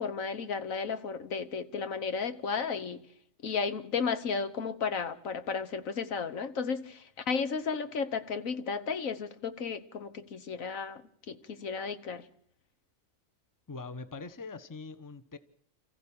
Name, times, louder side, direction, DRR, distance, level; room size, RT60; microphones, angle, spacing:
voice 1, 0.0-3.0 3.4-11.0 11.3-12.3, left 5 dB, 75° left, 11 dB, 1.6 m, -33 dB
voice 2, 13.7-15.4, left 4 dB, 15° left, 12 dB, 1.0 m, -42 dB
28.0 x 15.0 x 8.7 m, 0.68 s
omnidirectional pair, 1.4 m